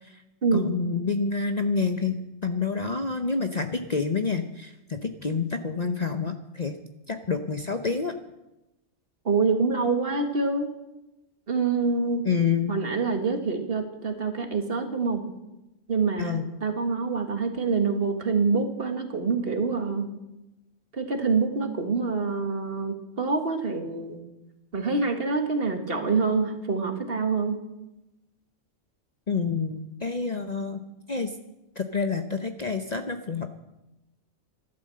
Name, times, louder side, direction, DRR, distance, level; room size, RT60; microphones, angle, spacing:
voice 1, 0.5-6.8 7.1-8.1 12.2-12.7 16.2-16.5 29.3-31.3 31.8-33.5, left 5 dB, 40° left, 7 dB, 0.8 m, -28 dB
voice 2, 9.3-10.7 11.5-12.2 12.7-15.2 15.9-20.1 20.9-24.2 24.7-27.6, right 4 dB, 50° right, 5 dB, 1.8 m, -26 dB
12.5 x 12.0 x 7.6 m, 0.97 s
omnidirectional pair, 1.3 m